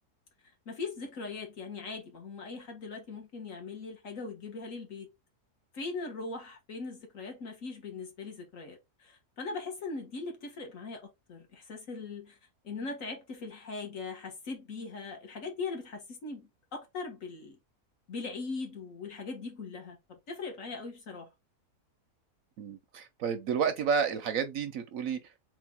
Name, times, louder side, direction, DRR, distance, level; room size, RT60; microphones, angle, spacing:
voice 1, 0.6-5.1 5.7-12.4 12.6-17.6 18.1-21.3, left 4 dB, 55° left, 1.5 m, -40 dB
voice 2, 22.6-25.2, right 6 dB, 65° right, 0.9 m, -30 dB
3.6 x 3.1 x 3.5 m
omnidirectional pair, 1.7 m